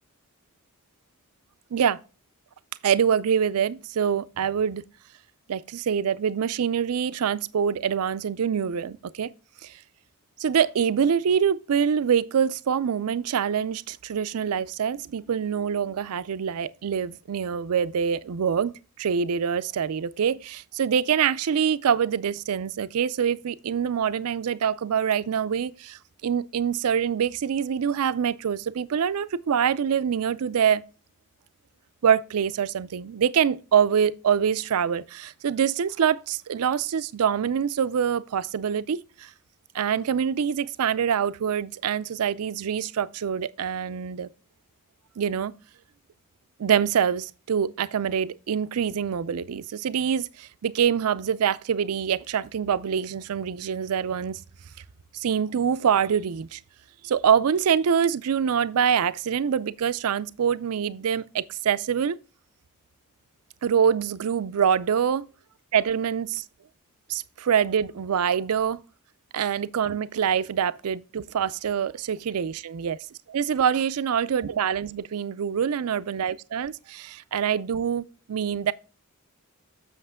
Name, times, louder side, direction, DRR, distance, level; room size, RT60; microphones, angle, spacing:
voice 1, 2.8-4.8 5.5-9.3 9.6-9.8 10.4-30.8 32.0-39.3 39.7-44.3 45.2-45.5 46.6-54.4 55.1-56.6 57.0-62.2 63.6-65.2 65.7-66.4 67.1-68.8 69.3-73.0 73.3-78.7, right 7 dB, 75° right, 0.4 m, -25 dB
7.8 x 6.4 x 3.6 m
head